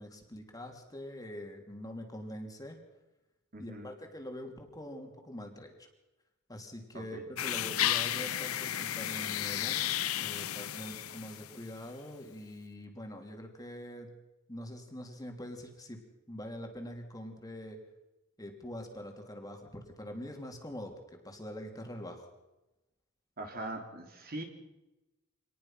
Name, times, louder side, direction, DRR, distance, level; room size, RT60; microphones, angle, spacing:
voice 1, 0.0-2.8 3.6-5.9 6.5-9.8 10.2-14.1 14.5-16.0 16.3-17.8 18.4-22.3, equal, 15° left, 3 dB, 3.2 m, -44 dB
voice 2, 3.5-3.9 6.9-7.2 7.7-7.8 23.4-24.4, right 2 dB, 45° right, 3 dB, 3.8 m, -41 dB
sound 1, 7.4-11.7, left 12 dB, 85° left, 0.8 m, -33 dB
26.0 x 20.0 x 5.9 m, 0.99 s
head